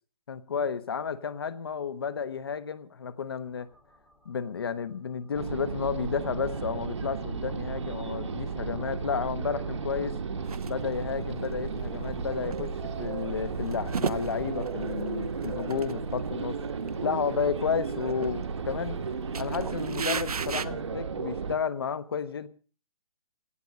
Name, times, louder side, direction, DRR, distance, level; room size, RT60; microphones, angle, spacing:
voice 1, 0.3-3.7 4.2-10.2 10.7-16.6 17.0-19.0 19.4-22.5, left 6 dB, 40° left, 1.0 m, -32 dB
sound 1, 3.4-15.7, left 2 dB, ahead, 1.2 m, -54 dB
sound 2, 5.3-21.6, right 5 dB, 50° right, 1.4 m, -34 dB
sound 3, 10.4-10.7 11.4-11.5 11.9-13.1 13.5-15.1 15.4-15.9 16.2-16.3 16.7-17.0 17.4-17.8 18.2-19.0 19.3-20.6, right 6 dB, 80° right, 1.1 m, -35 dB
17.0 x 8.0 x 8.5 m
hypercardioid pair, 175°, 19 cm